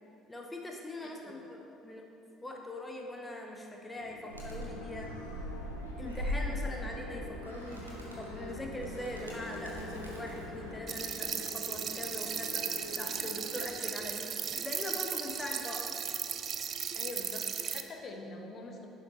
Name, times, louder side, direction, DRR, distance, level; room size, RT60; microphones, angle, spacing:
voice 1, 0.3-2.0 2.4-5.1 6.0-16.0, left 1 dB, 15° left, 1 dB, 1.0 m, -42 dB
voice 2, 1.0-1.3 16.9-18.9, left 2 dB, 40° left, 3 dB, 1.1 m, -44 dB
sound 1, 4.0-13.6, left 2 dB, 70° left, 0.7 m, -48 dB
Animal, 4.3-10.8, equal, 85° right, 1.1 m, -40 dB
sound 2, 10.9-17.8, right 8 dB, 45° right, 0.5 m, -36 dB
10.5 x 6.0 x 4.4 m, 3.0 s
figure-of-eight pair, 55°, 0 cm